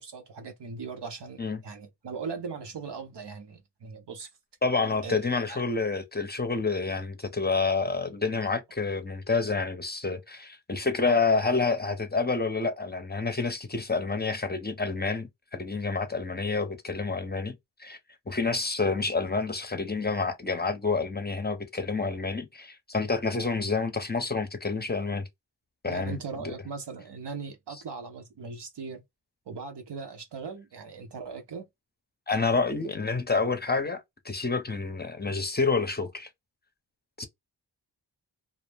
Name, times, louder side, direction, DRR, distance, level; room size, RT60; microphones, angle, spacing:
voice 1, 0.0-4.3 5.0-5.6 11.1-11.2 25.8-29.0 29.5-31.7, right 5 dB, 70° right, 0.9 m, -39 dB
voice 2, 4.6-18.0 18.3-25.3 25.8-26.2 26.4-26.5 32.3-36.3 37.2-37.3, left 4 dB, 25° left, 0.6 m, -28 dB
2.4 x 2.0 x 3.3 m
cardioid pair, 45°, 42 cm